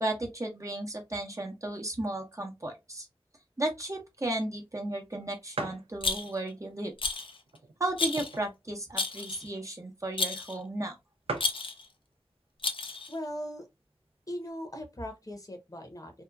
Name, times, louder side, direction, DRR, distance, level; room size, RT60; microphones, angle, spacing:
voice 1, 0.0-3.1 3.6-6.9 7.8-11.0, right 1 dB, 35° right, 0.8 m, -34 dB
sound 1, 4.6-4.7 5.0-5.1 5.5-5.9 6.6-6.7 7.4-8.6 9.0-9.1 9.3-9.5 10.3-10.4 10.6-10.7 10.9-11.0 11.3-11.7 12.6-12.9 13.4-13.5 13.7-14.5, right 3 dB, 90° right, 0.5 m, -39 dB
Rattle, 6.0-6.5 7.0-7.4 8.0-8.4 9.0-9.5 10.2-10.6 11.4-11.9 12.6-13.1, left 3 dB, 65° left, 0.5 m, -32 dB
voice 2, 13.1-13.7 14.3-16.2, equal, 40° left, 0.9 m, -39 dB
2.8 x 2.3 x 2.3 m
wide cardioid pair, 45°, 10 cm